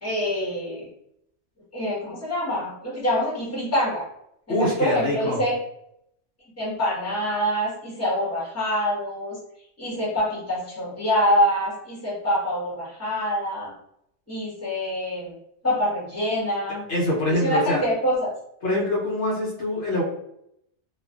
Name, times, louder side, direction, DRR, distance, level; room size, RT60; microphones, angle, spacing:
voice 1, 0.0-0.9 1.7-4.0 4.5-5.6 6.6-9.4 9.8-13.7 14.3-15.3 15.6-16.8 17.3-18.3, equal, 15° left, -7 dB, 1.1 m, -25 dB
voice 2, 4.5-5.4 16.9-17.8 18.6-20.0, left 1 dB, 70° left, -4 dB, 1.0 m, -24 dB
2.5 x 2.5 x 2.3 m, 0.74 s
omnidirectional pair, 1.3 m